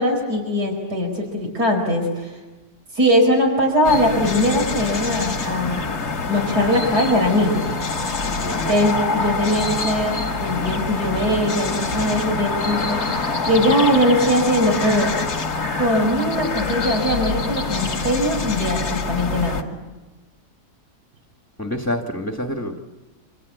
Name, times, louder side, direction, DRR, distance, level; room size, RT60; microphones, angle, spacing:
voice 1, 0.0-2.3 2.9-5.8 6.3-7.6 8.7-15.1 15.7-19.7, equal, 85° right, 3 dB, 5.3 m, -21 dB
sound 1, 3.8-19.6, left 4 dB, 75° left, 2.4 m, -25 dB
voice 2, 8.2-8.8 17.9-18.2 21.6-22.8, left 1 dB, 10° left, 4 dB, 1.6 m, -28 dB
27.5 x 26.0 x 8.2 m, 1.2 s
omnidirectional pair, 1.7 m